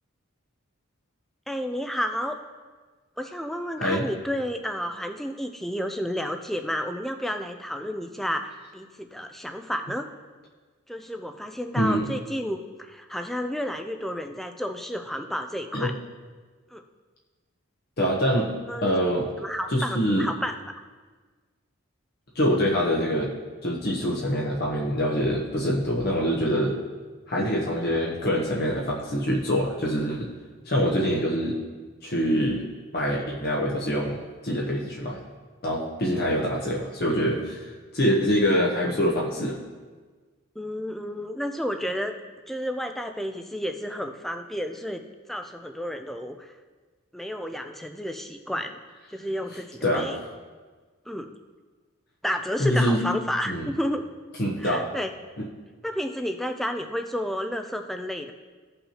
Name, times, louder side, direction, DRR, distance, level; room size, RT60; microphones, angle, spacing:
voice 1, 1.5-2.4 3.2-10.1 10.9-15.9 16.7-16.8 18.7-18.9 19.4-20.5 40.6-42.1 42.5-45.0 45.3-46.5 47.1-48.8 49.1-50.2 51.1-51.3 52.2-54.0 54.6-55.1 55.8-58.3, equal, ahead, 6 dB, 0.4 m, -31 dB
voice 2, 18.0-18.5 18.8-19.2 19.7-20.3 22.3-23.3 23.6-26.8 27.3-30.3 30.7-31.6 32.0-32.6 32.9-35.2 35.6-37.7 37.9-39.6 49.8-50.2 52.6-53.0 53.4-53.7 54.4-54.9 55.4-55.5, equal, 45° left, -3 dB, 0.9 m, -25 dB
15.0 x 5.5 x 2.9 m, 1.4 s
head